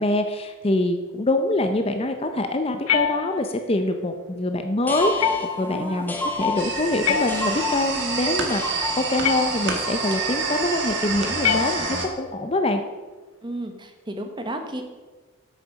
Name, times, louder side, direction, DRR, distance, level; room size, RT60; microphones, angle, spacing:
voice 1, 0.0-12.8, left 1 dB, 25° left, 7 dB, 0.6 m, -25 dB
sound 1, 2.9-3.7 5.2-5.8 7.0-7.9 9.2-9.9 11.4-12.3, left 8 dB, 80° left, 0.8 m, -27 dB
sound 2, 4.8-10.4, left 3 dB, 10° left, 0.9 m, -30 dB
voice 2, 5.6-6.0 13.4-14.8, right 1 dB, 20° right, 5 dB, 0.9 m, -33 dB
sound 3, 6.6-12.1, right 4 dB, 55° right, 1.5 m, -28 dB
8.4 x 6.8 x 6.3 m, 1.3 s
head